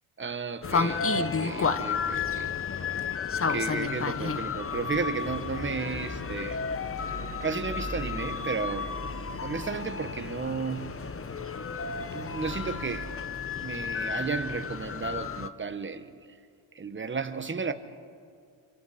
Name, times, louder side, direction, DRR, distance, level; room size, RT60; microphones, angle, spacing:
voice 1, 0.2-2.5 3.5-6.6 7.4-8.9 9.4-11.0 12.1-13.1 13.6-16.3 16.7-17.7, right 5 dB, 25° right, 1.2 m, -33 dB
sound 1, 0.6-15.5, left 5 dB, 25° left, 0.8 m, -32 dB
sound 2, 5.1-13.1, equal, 55° left, 6.9 m, -43 dB
26.5 x 25.0 x 4.2 m
cardioid pair, 85°, 49 cm